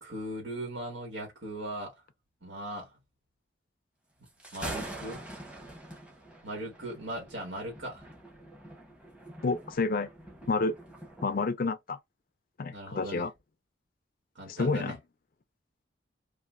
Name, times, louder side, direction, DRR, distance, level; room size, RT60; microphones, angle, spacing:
voice 1, 0.0-1.9 2.4-2.9 4.5-5.2 6.4-8.1 12.7-13.3 14.4-15.0, right 1 dB, 85° right, 1.8 m, -38 dB
Thunder, 4.3-11.5, right 1 dB, 5° right, 0.9 m, -45 dB
voice 2, 9.4-10.1 10.5-10.8 11.2-12.0 12.6-13.3 14.5-15.0, left 3 dB, 50° left, 0.4 m, -29 dB
3.9 x 2.6 x 2.5 m
head